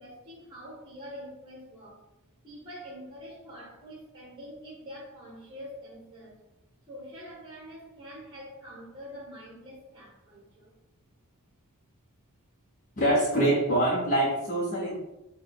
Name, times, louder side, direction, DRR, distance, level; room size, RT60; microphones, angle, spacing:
voice 1, 0.0-2.0 2.4-6.4 6.9-10.7, equal, 20° right, -3 dB, 1.0 m, -45 dB
voice 2, 13.0-15.0, right 1 dB, 35° left, -5 dB, 0.9 m, -24 dB
5.9 x 2.3 x 3.5 m, 0.93 s
head